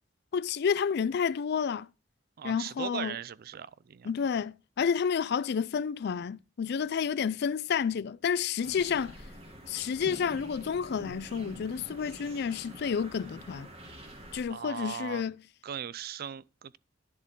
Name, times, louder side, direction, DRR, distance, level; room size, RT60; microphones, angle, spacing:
voice 1, 0.3-1.9 2.4-3.2 4.0-9.1 9.7-13.7 14.3-15.4, left 6 dB, 60° left, 0.4 m, -30 dB
voice 2, 2.4-4.1 14.5-15.2 15.6-16.8, right 8 dB, 50° right, 0.4 m, -38 dB
sound 1, 8.6-14.4, equal, 35° right, 2.2 m, -47 dB
10.5 x 7.3 x 3.7 m
head